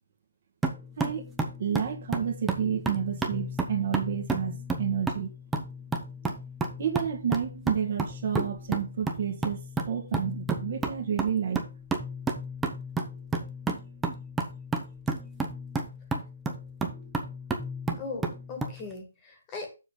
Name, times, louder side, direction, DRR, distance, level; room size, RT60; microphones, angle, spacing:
sound 1, 0.6-18.8, right 3 dB, 5° right, 0.7 m, -32 dB
voice 1, 1.0-1.3 1.6-5.3 6.8-9.6 9.9-11.6, right 8 dB, 40° right, 1.6 m, -30 dB
voice 2, 18.0-19.7, left 4 dB, 15° left, 1.6 m, -39 dB
7.2 x 4.0 x 6.5 m
hypercardioid pair, 170°, 0 cm